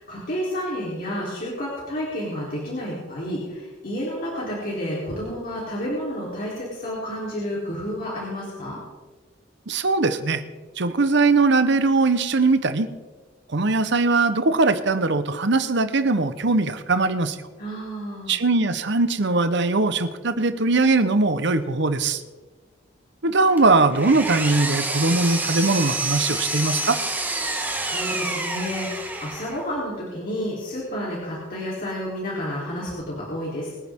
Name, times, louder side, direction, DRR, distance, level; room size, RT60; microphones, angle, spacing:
voice 1, 0.0-8.8 17.6-18.3 27.5-33.7, equal, 50° left, -6 dB, 3.7 m, -30 dB
voice 2, 9.7-10.4 10.8-12.9 13.5-17.4 18.3-22.2 23.2-27.0, right 3 dB, 60° right, 10 dB, 1.0 m, -20 dB
Power tool, 23.6-29.6, right 2 dB, 10° right, 1.4 m, -28 dB
23.5 x 9.6 x 3.7 m, 1.3 s
head